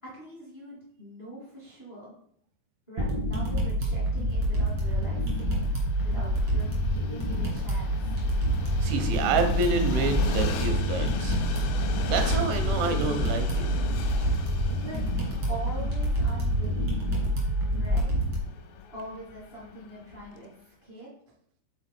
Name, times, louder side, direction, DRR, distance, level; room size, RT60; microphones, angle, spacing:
voice 1, 0.0-2.1 2.9-5.6 6.0-8.1 14.8-15.0 15.5-17.3 17.7-18.2 18.9-21.1, right 1 dB, 55° left, -6 dB, 0.5 m, -43 dB
sound 1, 3.0-18.4, equal, 70° right, 1.0 m, -27 dB
Train, 4.4-20.5, left 6 dB, 85° left, 2.8 m, -39 dB
voice 2, 8.8-11.4 12.1-13.7, right 4 dB, 90° right, 6 dB, 3.2 m, -28 dB
6.9 x 3.9 x 4.2 m, 0.65 s
omnidirectional pair, 5.2 m